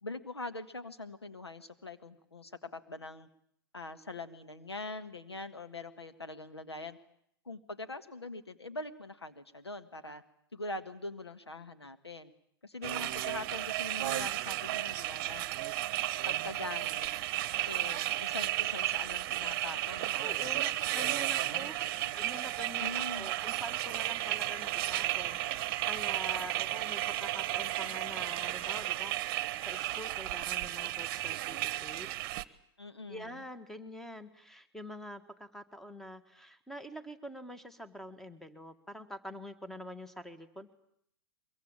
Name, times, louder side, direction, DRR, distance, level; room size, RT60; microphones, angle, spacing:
voice 1, 0.0-3.3 3.7-7.0 7.4-10.2 10.5-12.3 12.6-15.5 16.3-17.1 17.6-21.1 21.4-22.1 22.8-23.3 32.8-33.4, left 2 dB, 85° left, 8 dB, 1.8 m, -43 dB
sound 1, 12.8-32.4, right 15 dB, 45° right, 1.1 m, -33 dB
voice 2, 20.2-21.9 22.1-32.1 33.1-40.7, equal, ahead, 12 dB, 1.7 m, -46 dB
23.5 x 23.5 x 8.8 m, 0.71 s
figure-of-eight pair, 100°, 13 cm